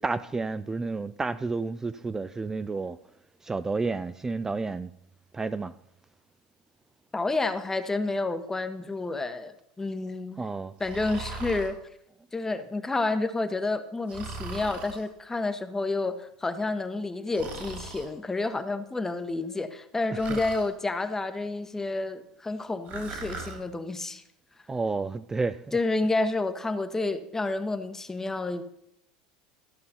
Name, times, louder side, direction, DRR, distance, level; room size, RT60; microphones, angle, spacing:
voice 1, 0.0-3.0 3.4-4.9 5.3-5.7 10.4-10.8 19.5-19.6 20.1-20.4 24.7-25.8, right 3 dB, 15° right, 0.4 m, -31 dB
voice 2, 7.1-10.4 10.8-11.8 12.3-24.2 25.7-28.6, left 2 dB, 15° left, 1.0 m, -30 dB
Breathing, 10.8-11.7 14.1-15.0 17.3-18.1 20.2-20.7 22.9-23.6, right 3 dB, 55° right, 2.9 m, -38 dB
13.5 x 5.5 x 5.6 m
hypercardioid pair, 90°, 3 cm